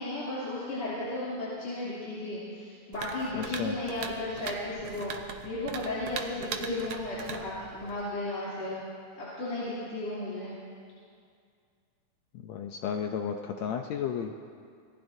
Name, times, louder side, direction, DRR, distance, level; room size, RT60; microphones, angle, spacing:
voice 1, 0.0-8.8 9.2-10.6, left 2 dB, 55° left, -10 dB, 4.2 m, -34 dB
sound 1, 2.9-8.1, right 6 dB, 70° right, 1.5 m, -40 dB
voice 2, 3.4-3.8 12.4-14.3, left 7 dB, 75° left, 4 dB, 1.7 m, -33 dB
26.5 x 19.0 x 2.7 m, 2.2 s
omnidirectional pair, 3.6 m